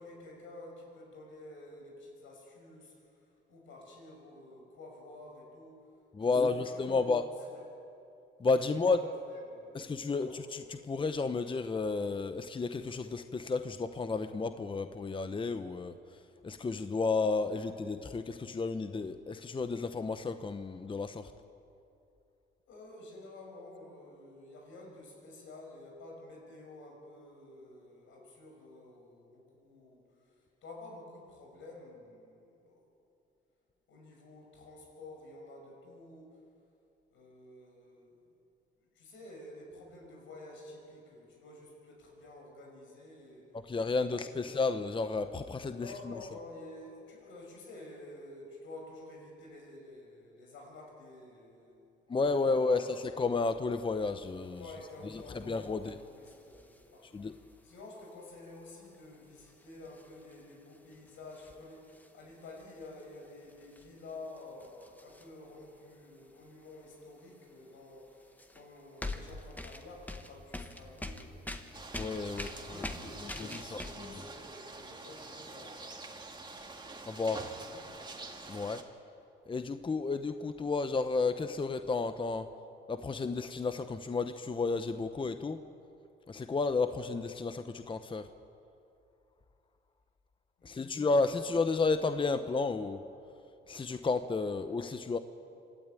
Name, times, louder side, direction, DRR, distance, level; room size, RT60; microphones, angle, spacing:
voice 1, 0.0-5.9 6.2-7.6 8.6-10.4 17.5-17.7 22.7-32.8 33.9-36.4 37.1-38.2 38.9-43.5 44.1-44.4 45.7-52.2 52.5-53.2 54.5-71.7 72.3-76.5 77.2-78.1 90.6-91.0, left 2 dB, 80° left, 0 dB, 6.3 m, -51 dB
voice 2, 6.1-7.3 8.4-9.0 9.7-15.9 16.4-21.3 43.7-46.1 52.1-54.6 55.5-55.9 57.1-57.3 71.9-72.8 73.2-74.1 77.1-77.4 78.5-78.8 79.5-82.5 82.9-85.6 86.3-88.3 90.6-93.0 93.7-95.2, left 4 dB, 25° left, 9 dB, 0.8 m, -32 dB
sound 1, 54.3-65.9 66.4-67.4 67.9-74.0, left 2 dB, 10° left, 1.6 m, -46 dB
sound 2, 71.7-78.8, right 3 dB, 20° right, 2.2 m, -46 dB
26.0 x 12.5 x 9.2 m, 2.7 s
cardioid pair, 90°, 20 cm